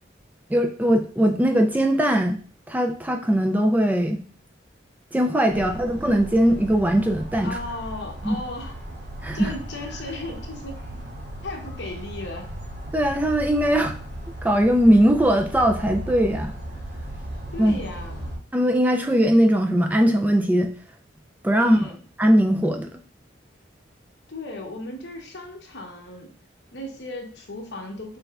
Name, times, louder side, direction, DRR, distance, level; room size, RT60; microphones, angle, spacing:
voice 1, 0.5-2.4 2.7-4.2 5.1-7.6 8.2-8.4 9.2-9.5 12.9-13.9 14.4-16.5 17.6-17.8 18.5-20.7 21.4-21.8 22.2-22.9, equal, 10° right, 4 dB, 0.3 m, -20 dB
voice 2, 5.5-5.8 7.4-8.8 9.3-10.8 11.4-12.5 17.5-18.4 21.6-22.0 24.3-26.4 26.7-28.2, left 2 dB, 65° left, 2 dB, 1.0 m, -36 dB
sound 1, 5.5-18.4, equal, 60° right, 2.2 m, -36 dB
6.2 x 3.3 x 2.4 m, 0.42 s
head